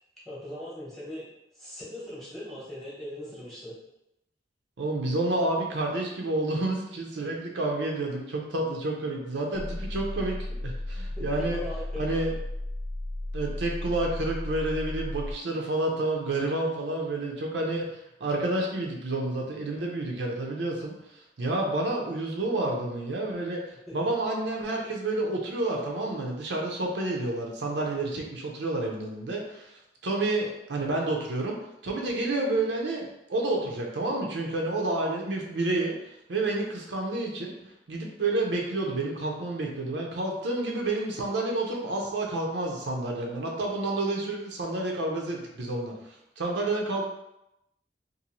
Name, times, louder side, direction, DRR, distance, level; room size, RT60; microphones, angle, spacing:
voice 1, 0.3-1.2 1.5-3.8 11.2-12.2 23.9-24.1, equal, ahead, -8 dB, 1.0 m, -40 dB
voice 2, 4.8-10.4 10.6-11.6 12.0-12.3 13.3-20.9 21.4-29.7 30.0-31.6 31.8-35.9 36.3-37.5 37.9-45.9 46.4-47.0, right 2 dB, 80° right, 0 dB, 0.5 m, -29 dB
sound 1, 9.5-15.3, left 1 dB, 55° left, 0.4 m, -34 dB
2.6 x 2.5 x 2.9 m, 0.86 s
head